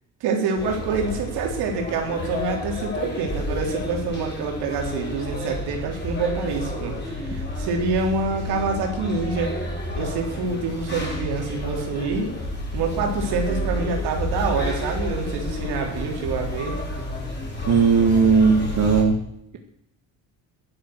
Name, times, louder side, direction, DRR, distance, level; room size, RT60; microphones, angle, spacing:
voice 1, 0.2-9.5 9.9-12.3 12.7-16.8, right 4 dB, 85° right, 1 dB, 3.7 m, -26 dB
sound 1, 0.6-19.0, left 1 dB, 30° left, 6.2 m, -30 dB
voice 2, 17.7-19.2, right 5 dB, 50° right, 2 dB, 1.9 m, -17 dB
12.5 x 11.5 x 7.9 m, 0.76 s
cardioid pair, 105°, 38 cm